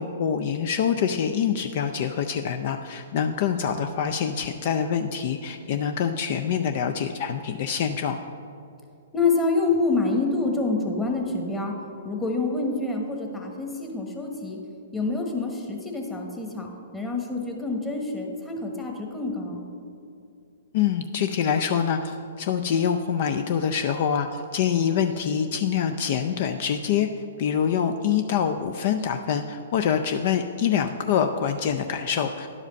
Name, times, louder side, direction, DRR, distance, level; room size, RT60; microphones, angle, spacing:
voice 1, 0.0-8.2 20.7-27.1 27.4-32.5, left 8 dB, 50° left, 7 dB, 0.4 m, -25 dB
voice 2, 9.1-11.7 12.0-14.6 14.9-16.7 16.9-19.6, left 3 dB, 10° left, 0 dB, 1.3 m, -27 dB
11.0 x 5.0 x 5.3 m, 2.5 s
hypercardioid pair, 125°, 0 cm